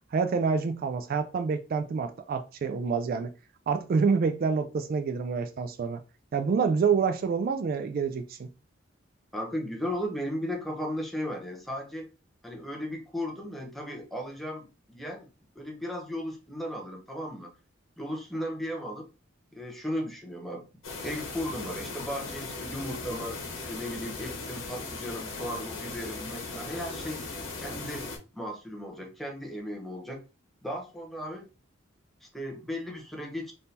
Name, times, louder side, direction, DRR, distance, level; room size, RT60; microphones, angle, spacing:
voice 1, 0.1-3.3 3.7-6.0 6.3-8.5, right 5 dB, 50° right, 0.3 m, -27 dB
voice 2, 9.3-12.1 12.4-15.3 15.5-17.5 18.0-19.1 19.5-20.7 21.0-23.4 23.7-27.2 27.6-28.1 28.3-30.2 30.6-31.5 32.2-33.5, equal, ahead, 0.7 m, -36 dB
sound 1, 20.8-28.2, left 3 dB, 90° left, 1.0 m, -38 dB
3.5 x 2.6 x 2.8 m
head